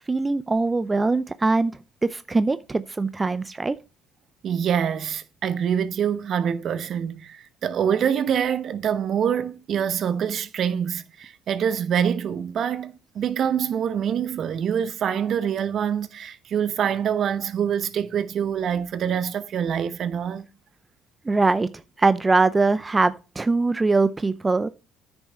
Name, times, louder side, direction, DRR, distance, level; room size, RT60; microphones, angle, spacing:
voice 1, 0.1-1.7 2.0-3.8 21.3-21.7 22.0-24.7, right 3 dB, 25° right, 0.5 m, -22 dB
voice 2, 4.4-20.5, right 8 dB, 55° right, 1.0 m, -25 dB
9.8 x 6.1 x 4.2 m
hypercardioid pair, 60°, 0 cm